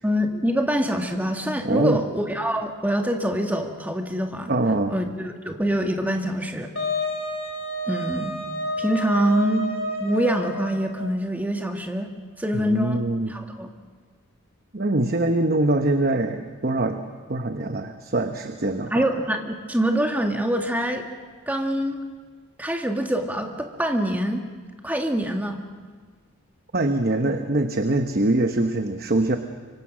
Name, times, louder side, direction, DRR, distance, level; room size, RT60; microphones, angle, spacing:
voice 1, 0.0-4.5 4.9-6.7 7.9-8.4 8.8-9.7 10.0-12.1 12.4-13.0 13.3-13.7 18.9-19.4 19.7-21.1 21.5-22.1 22.6-24.4 24.8-25.6, equal, 10° right, 3 dB, 1.7 m, -25 dB
voice 2, 1.6-2.0 4.5-5.0 12.5-13.3 14.7-17.0 17.3-19.1 26.7-29.4, right 2 dB, 45° right, 6 dB, 1.0 m, -23 dB
Wind instrument woodwind instrument, 6.8-11.1, left 1 dB, 60° left, 3.3 m, -30 dB
25.0 x 24.5 x 6.2 m, 1.5 s
head